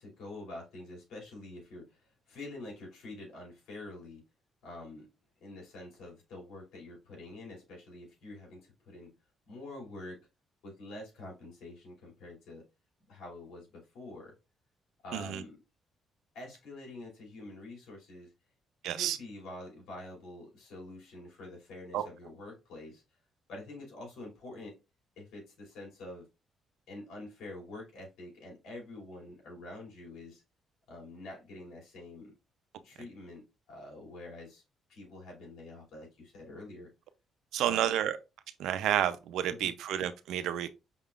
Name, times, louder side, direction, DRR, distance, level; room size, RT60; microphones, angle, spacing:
voice 1, 0.0-4.2 4.6-5.1 5.4-9.1 9.5-10.2 10.6-12.6 13.1-14.4 15.0-15.6 16.3-18.3 18.8-23.0 23.5-24.8 25.2-26.3 26.9-30.4 30.9-32.3 32.8-34.6 34.9-36.9 37.6-38.0 39.5-39.7, left 2 dB, 80° left, 2.7 m, -46 dB
voice 2, 15.1-15.4 18.8-19.2 21.9-22.1 37.5-38.2 38.6-40.7, right 11 dB, 85° right, 0.5 m, -30 dB
5.7 x 3.6 x 2.4 m
cardioid pair, 90°, 0 cm